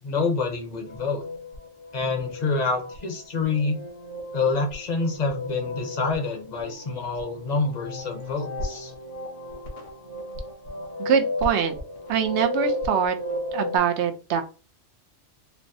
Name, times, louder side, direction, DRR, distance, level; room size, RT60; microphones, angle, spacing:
voice 1, 0.0-1.2 1.9-3.8 4.3-8.9, left 4 dB, 40° left, 3 dB, 0.8 m, -27 dB
sound 1, 0.8-13.8, left 1 dB, 70° left, 1.7 m, -34 dB
voice 2, 11.0-11.7 12.1-13.1 13.5-14.4, right 7 dB, 70° right, 7 dB, 0.9 m, -23 dB
4.4 x 2.0 x 2.7 m, 0.33 s
omnidirectional pair, 1.3 m